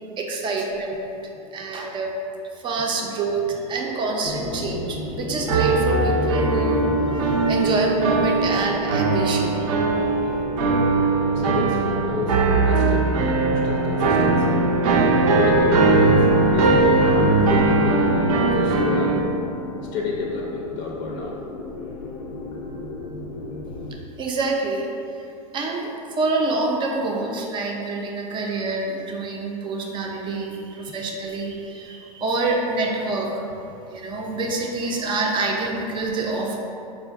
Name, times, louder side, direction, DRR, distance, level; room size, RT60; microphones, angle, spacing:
voice 1, 0.2-2.2 2.6-9.7 24.2-24.9 25.5-33.4 33.9-36.6, right 3 dB, 25° right, 0 dB, 0.5 m, -26 dB
sound 1, 4.2-23.9, left 1 dB, 90° left, 0.6 m, -31 dB
sound 2, 5.5-19.2, right 3 dB, 75° right, 0.5 m, -20 dB
voice 2, 11.3-14.6 15.4-18.1 18.4-19.2 19.9-21.4, left 4 dB, 45° left, -2 dB, 0.5 m, -30 dB
4.3 x 2.4 x 3.5 m, 2.8 s
hypercardioid pair, 125°, 18 cm